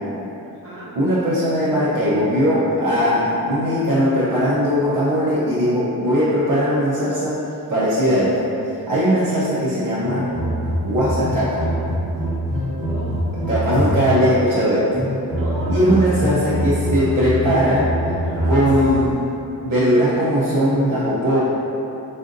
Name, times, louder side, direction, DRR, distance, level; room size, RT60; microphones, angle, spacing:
voice 1, 0.4-0.9 9.0-9.4 12.9-13.2 15.3-16.0 18.2-18.6, right 1 dB, 35° right, -9 dB, 1.1 m, -34 dB
voice 2, 1.0-7.4 7.7-8.5 8.9-10.3 10.8-11.7 13.5-14.9 15.7-17.9 18.4-19.2 19.6-21.4, equal, 55° right, -10 dB, 0.7 m, -19 dB
sound 1, 10.0-14.3 14.9-19.2, equal, 10° right, 0.9 m, -24 dB
4.1 x 3.8 x 2.6 m, 2.9 s
wide cardioid pair, 165°, 39 cm